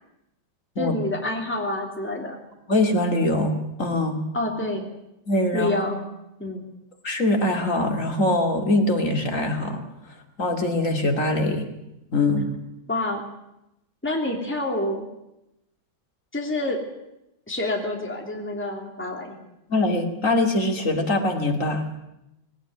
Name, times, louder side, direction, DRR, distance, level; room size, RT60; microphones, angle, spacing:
voice 1, 0.8-2.4 4.3-4.9 5.5-6.0 6.4-6.7 12.9-13.2 14.0-15.1 16.3-16.8 17.5-19.4, left 1 dB, 5° left, 1 dB, 2.9 m, -27 dB
voice 2, 2.7-4.2 5.3-5.8 7.0-9.8 10.4-11.7 12.1-12.5 19.7-22.0, left 2 dB, 40° left, 3 dB, 2.8 m, -23 dB
19.5 x 18.0 x 9.5 m, 0.89 s
omnidirectional pair, 2.2 m